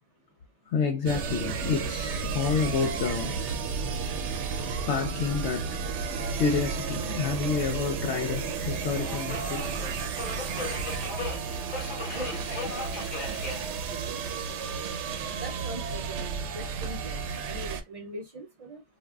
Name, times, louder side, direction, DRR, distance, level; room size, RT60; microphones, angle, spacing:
voice 1, 0.7-3.5 4.7-9.8 12.3-12.4, left 5 dB, 75° left, 0.9 m, -29 dB
sound 1, 1.1-17.8, right 5 dB, 75° right, 0.9 m, -33 dB
sound 2, 5.5-14.4, right 4 dB, 5° right, 0.5 m, -47 dB
Subway metro underground, 6.4-16.9, left 3 dB, 45° left, 1.0 m, -41 dB
voice 2, 12.1-12.9 13.9-14.2 15.4-18.8, right 1 dB, 50° right, 0.4 m, -42 dB
3.4 x 2.3 x 2.3 m
omnidirectional pair, 1.2 m